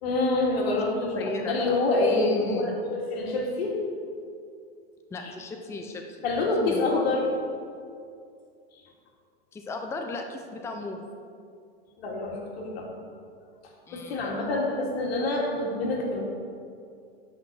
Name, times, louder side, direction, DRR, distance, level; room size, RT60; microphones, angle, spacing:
voice 1, 0.0-3.8 5.2-5.3 6.2-7.2 12.0-12.9 13.9-16.2, left 2 dB, 85° left, -1 dB, 2.5 m, -26 dB
voice 2, 1.2-2.8 5.1-6.2 6.6-7.0 9.5-11.0 13.9-14.3, left 3 dB, 10° left, 3 dB, 0.6 m, -36 dB
8.1 x 6.0 x 7.7 m, 2.3 s
supercardioid pair, 140°, 30 cm